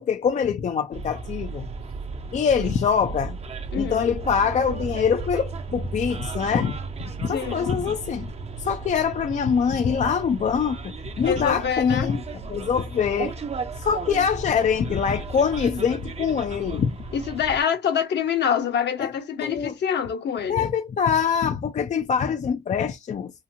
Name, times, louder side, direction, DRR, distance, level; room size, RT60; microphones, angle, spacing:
voice 1, 0.0-1.7 2.3-3.4 3.7-6.8 7.2-8.3 8.6-13.3 13.8-17.0 19.0-19.1 19.4-19.7 20.5-23.3, left 7 dB, 40° left, 0.4 m, -24 dB
Bus, 0.9-17.6, right 4 dB, 30° right, 0.5 m, -35 dB
voice 2, 3.7-4.2 7.3-7.7 11.2-12.1 17.1-20.7, left 8 dB, 60° left, 0.9 m, -26 dB
2.8 x 2.6 x 2.5 m
cardioid pair, 90°, 20 cm